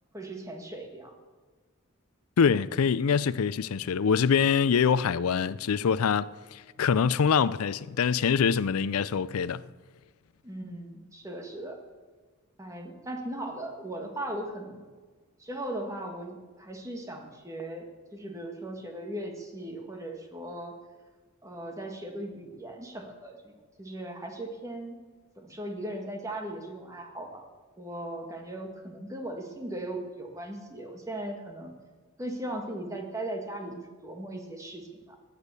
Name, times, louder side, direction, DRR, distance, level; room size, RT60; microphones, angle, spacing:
voice 1, 0.1-1.2 10.4-11.8 12.6-14.8 15.4-20.7 21.4-25.0 25.4-27.5 27.8-31.7 32.2-35.2, right 1 dB, 15° right, 1.8 m, -38 dB
voice 2, 2.4-9.6, left 6 dB, 85° left, 0.4 m, -25 dB
16.0 x 10.0 x 6.9 m
head